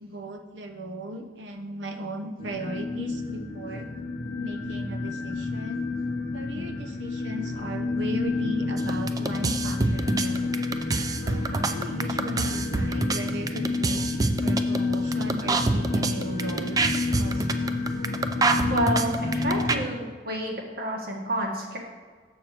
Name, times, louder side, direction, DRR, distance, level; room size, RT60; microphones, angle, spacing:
voice 1, 0.0-3.9 4.4-5.9 6.3-10.5 11.2-16.8 17.2-17.9, equal, 70° right, 6 dB, 0.8 m, -37 dB
sound 1, 2.4-19.9, left 3 dB, 45° left, 0.5 m, -30 dB
sound 2, 8.8-19.8, right 3 dB, 20° right, 0.3 m, -26 dB
voice 2, 18.7-21.8, right 1 dB, 55° right, 0 dB, 1.5 m, -29 dB
7.2 x 4.4 x 6.5 m, 1.5 s
head